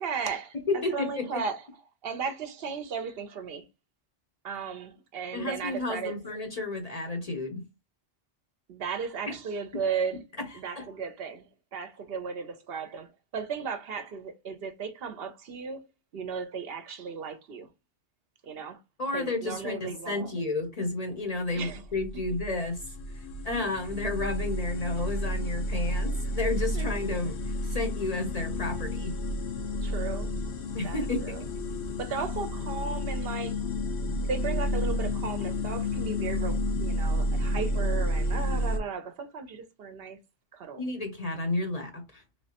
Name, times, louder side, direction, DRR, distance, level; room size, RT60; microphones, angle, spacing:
voice 1, 0.0-1.6 2.0-3.6 4.4-6.2 8.7-10.2 10.5-15.8 16.1-17.7 18.4-18.8 19.1-20.3 21.5-21.8 26.7-26.9 29.8-30.3 30.8-31.4 32.0-33.7 34.2-40.2 40.5-40.8, right 5 dB, 65° right, 0.7 m, -35 dB
voice 2, 0.7-1.4 5.3-7.6 9.3-9.4 10.7-10.9 19.0-27.4 27.6-29.2 30.7-31.8 40.8-42.2, left 2 dB, 40° left, 0.6 m, -32 dB
sound 1, 21.7-38.8, left 1 dB, 75° left, 0.9 m, -31 dB
3.3 x 3.1 x 2.8 m
omnidirectional pair, 1.2 m